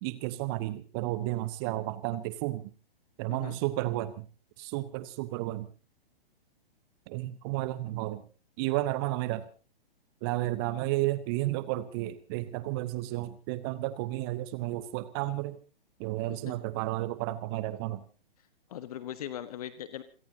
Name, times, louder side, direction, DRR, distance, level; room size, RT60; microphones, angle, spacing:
voice 1, 0.0-2.6 3.2-4.2 4.6-5.7 7.1-8.2 8.6-9.5 10.2-15.6 16.0-18.0, right 16 dB, 25° right, 15 dB, 1.0 m, -32 dB
voice 2, 3.3-3.6 16.3-16.5 18.7-20.0, left 11 dB, 40° left, 13 dB, 1.4 m, -40 dB
28.0 x 18.0 x 2.8 m, 0.35 s
figure-of-eight pair, 120°, 29 cm